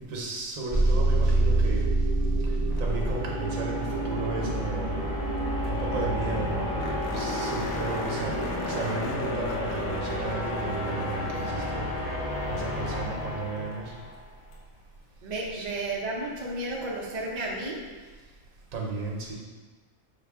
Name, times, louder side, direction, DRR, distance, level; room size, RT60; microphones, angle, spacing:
voice 1, 0.1-1.8 2.8-5.0 5.7-8.4 8.7-11.9 12.5-13.9 15.5-15.7 18.7-19.3, right 3 dB, 75° right, -2 dB, 1.2 m, -34 dB
sound 1, 0.7-11.1, right 2 dB, 20° left, 0.8 m, -29 dB
sound 2, 1.1-14.2, left 1 dB, 85° left, 1.3 m, -32 dB
sound 3, 5.4-5.5 5.6-5.7 6.1-6.2 6.8-12.2 14.5-14.6 17.5-17.6, left 2 dB, 70° left, 1.0 m, -39 dB
voice 2, 15.2-17.8, right 2 dB, 40° right, -3 dB, 0.6 m, -32 dB
5.7 x 2.3 x 3.4 m, 1.4 s
omnidirectional pair, 1.4 m